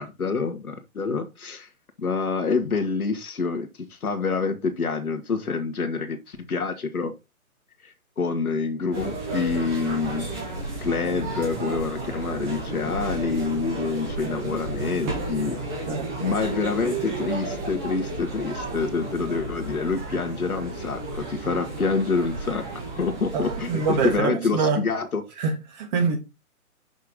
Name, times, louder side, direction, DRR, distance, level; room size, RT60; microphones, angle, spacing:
voice 1, 0.0-1.7 2.0-7.1 7.8-10.3 10.8-15.8 16.2-22.7 23.0-25.2, left 4 dB, 75° left, 1.6 m, -27 dB
sound 1, 8.9-24.2, right 2 dB, 5° right, 0.5 m, -33 dB
voice 2, 15.9-16.4 23.0-24.8 25.4-26.2, right 5 dB, 30° right, 2.5 m, -26 dB
6.6 x 5.5 x 3.8 m
figure-of-eight pair, 140°, 44 cm